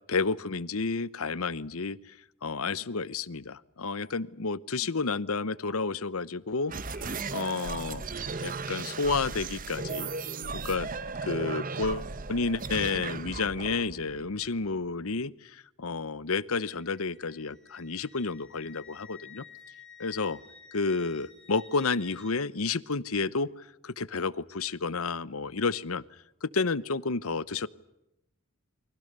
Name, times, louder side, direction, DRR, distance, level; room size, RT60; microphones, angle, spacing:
voice 1, 0.1-2.1 2.4-8.0 8.4-10.1 10.5-10.9 11.2-19.4 20.0-20.4 20.7-23.5 23.8-26.0 26.4-27.7, left 4 dB, 75° left, 18 dB, 0.9 m, -31 dB
sound 1, 6.7-14.9, right 4 dB, 40° right, 0.9 m, -36 dB
Wind instrument woodwind instrument, 16.6-22.4, left 6 dB, 5° left, 3.7 m, -52 dB
29.5 x 24.0 x 6.8 m, 0.88 s
head